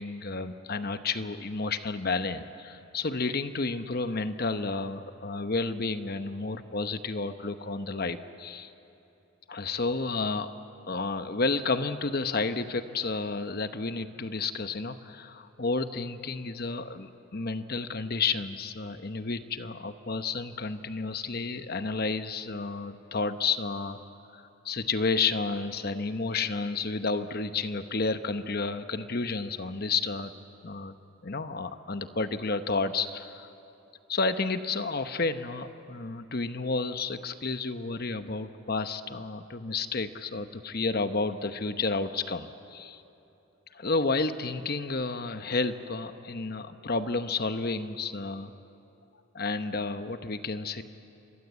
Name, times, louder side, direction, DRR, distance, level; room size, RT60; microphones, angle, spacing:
voice 1, 0.0-8.7 9.5-10.5 10.9-24.0 24.3-30.3 30.6-30.9 31.2-33.5 34.1-43.0 43.7-48.5 49.3-50.8, left 3 dB, 45° left, 9 dB, 1.0 m, -31 dB
28.5 x 23.0 x 8.3 m, 2.9 s
head